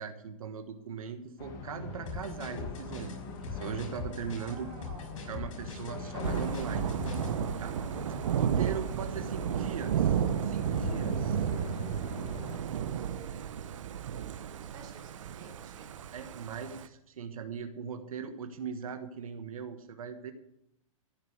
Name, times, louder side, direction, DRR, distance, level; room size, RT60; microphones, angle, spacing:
voice 1, 0.0-3.1 3.4-4.7 5.3-6.8 7.6-7.8 8.3-11.5 16.1-20.3, right 6 dB, 80° right, 7 dB, 1.5 m, -39 dB
sound 1, 1.4-12.6, left 4 dB, 30° left, 2.1 m, -42 dB
sound 2, 2.1-7.3, left 4 dB, 65° left, 6.0 m, -42 dB
voice 2, 4.3-5.4 6.4-7.0 12.5-13.8 14.6-16.0, right 6 dB, 25° right, 0 dB, 3.1 m, -53 dB
Thunder / Rain, 6.2-16.9, right 8 dB, 65° right, 0.9 m, -33 dB
15.0 x 6.7 x 8.0 m, 0.82 s
hypercardioid pair, 165°, 18 cm